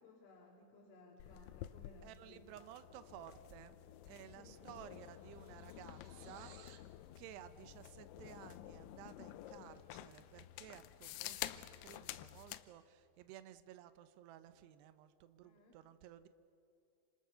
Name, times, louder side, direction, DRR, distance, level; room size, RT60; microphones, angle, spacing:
voice 1, 0.0-2.7 4.3-4.7 15.4-15.8, left 2 dB, 70° left, -1 dB, 4.6 m, -61 dB
sound 1, 1.2-12.7, left 14 dB, 90° left, 3.5 m, -50 dB
voice 2, 2.0-3.8 4.0-6.6 7.2-16.3, right 11 dB, 85° right, 11 dB, 2.4 m, -56 dB
sound 2, 3.8-4.0 4.2-6.9, right 8 dB, 65° right, 2.6 m, -64 dB
28.5 x 27.0 x 6.9 m, 2.7 s
omnidirectional pair, 6.0 m